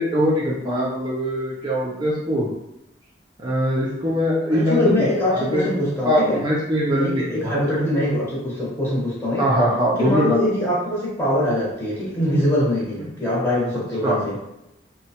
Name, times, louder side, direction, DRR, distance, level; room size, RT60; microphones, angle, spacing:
voice 1, 0.0-2.5 3.4-5.6 6.0-7.6 9.4-10.4 13.0-13.1 14.0-14.2, equal, 25° right, -6 dB, 0.4 m, -22 dB
voice 2, 4.5-6.4 6.9-9.5 10.0-14.4, left 1 dB, 15° left, -6 dB, 0.8 m, -23 dB
2.9 x 2.1 x 2.8 m, 0.87 s
head